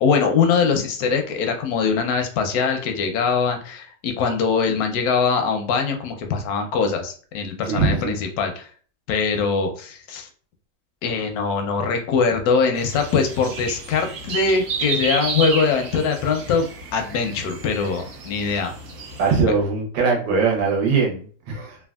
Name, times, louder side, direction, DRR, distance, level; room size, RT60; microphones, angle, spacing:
voice 1, 0.0-8.7 9.1-10.3 11.0-16.7 16.9-18.7, left 5 dB, 70° left, 5 dB, 0.9 m, -22 dB
voice 2, 7.6-8.1 19.2-21.8, right 4 dB, 85° right, 0 dB, 1.5 m, -21 dB
sound 1, 12.8-19.4, right 4 dB, 65° right, 0.9 m, -31 dB
3.4 x 2.3 x 2.3 m, 0.43 s
omnidirectional pair, 2.0 m